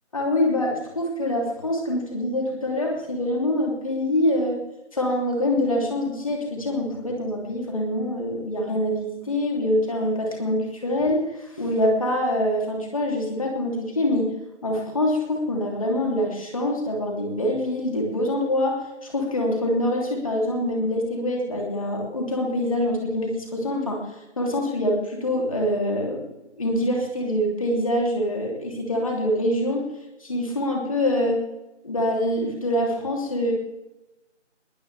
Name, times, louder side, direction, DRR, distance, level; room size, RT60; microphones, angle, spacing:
voice 1, 0.1-4.6 4.9-14.4 14.6-24.1 24.4-26.3 26.6-29.9 30.2-31.4 31.8-33.5, left 1 dB, 30° left, 0 dB, 3.2 m, -25 dB
21.5 x 18.5 x 3.5 m, 0.96 s
figure-of-eight pair, 165°, 36 cm